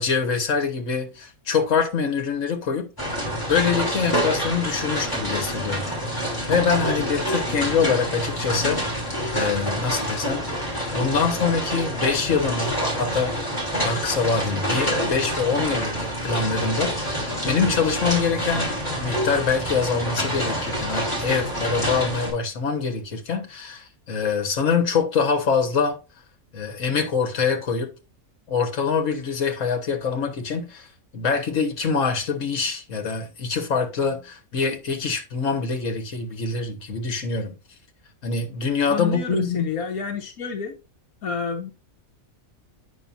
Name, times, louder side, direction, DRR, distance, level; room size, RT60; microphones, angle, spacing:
voice 1, 0.0-2.9 3.5-10.5 10.9-13.4 13.8-15.9 16.2-26.0 26.5-27.9 28.5-30.9 31.1-37.6 38.2-39.7, left 5 dB, 65° left, 1.8 m, -24 dB
sound 1, 3.0-22.3, equal, 15° left, 3.1 m, -27 dB
voice 2, 38.9-40.7 41.2-41.7, left 6 dB, 85° left, 1.4 m, -29 dB
8.8 x 6.1 x 2.7 m
omnidirectional pair, 1.5 m